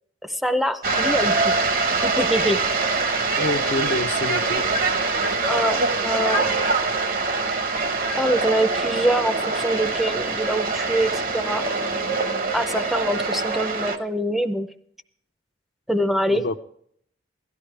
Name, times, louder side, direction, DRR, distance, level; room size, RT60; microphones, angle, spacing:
voice 1, 0.2-1.5 2.0-2.6 5.5-6.5 8.1-11.7 12.5-14.7 15.9-16.4, equal, ahead, 7 dB, 0.6 m, -24 dB
sound 1, 0.8-14.0, right 3 dB, 50° right, 1.0 m, -24 dB
voice 2, 3.4-4.6 16.3-16.6, left 2 dB, 65° left, 7 dB, 0.8 m, -27 dB
17.0 x 12.0 x 3.3 m, 0.65 s
head